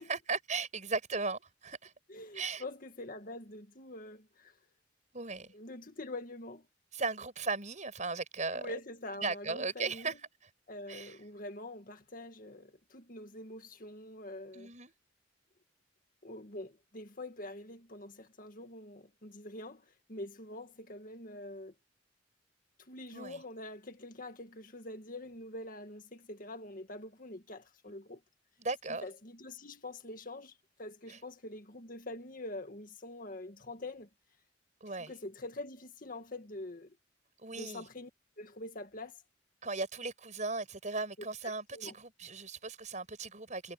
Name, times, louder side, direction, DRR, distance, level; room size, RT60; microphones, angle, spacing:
voice 1, 0.0-1.9 2.3-2.6 5.1-5.5 6.9-8.7 9.2-10.1 10.9-11.2 14.5-14.9 23.1-23.4 28.6-29.0 31.1-31.2 34.8-35.1 37.4-37.8 39.6-43.7, right 4 dB, 40° right, 6.2 m, -37 dB
voice 2, 2.1-4.5 5.5-6.7 8.5-10.2 10.7-14.7 16.2-21.7 22.8-28.2 29.0-34.1 35.0-37.0 37.5-38.1 38.4-39.2 41.4-41.9, left 2 dB, 45° left, 1.9 m, -45 dB
head